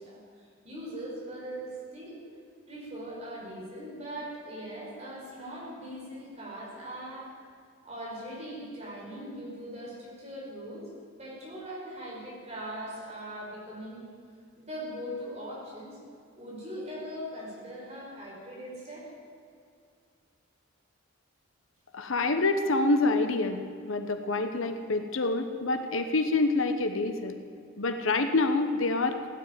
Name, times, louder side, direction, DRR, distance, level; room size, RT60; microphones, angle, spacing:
voice 1, 0.0-2.2 2.7-7.3 7.8-10.9 11.2-14.0 14.6-16.0 16.3-19.1, equal, 35° right, -5 dB, 5.0 m, -40 dB
voice 2, 21.9-27.4 27.8-29.3, left 3 dB, 80° left, 7 dB, 1.0 m, -27 dB
16.5 x 9.6 x 9.1 m, 2.3 s
head